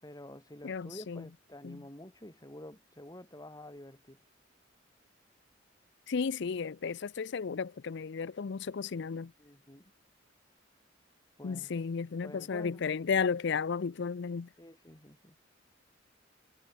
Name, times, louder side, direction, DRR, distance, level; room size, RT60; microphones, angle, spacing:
voice 1, 0.0-4.2 9.4-9.9 11.4-11.7 12.2-12.8 14.6-15.4, left 1 dB, 20° left, 5.6 m, -49 dB
voice 2, 0.6-1.2 1.6-1.8 6.1-9.3 11.4-14.5, left 5 dB, 65° left, 0.5 m, -33 dB
head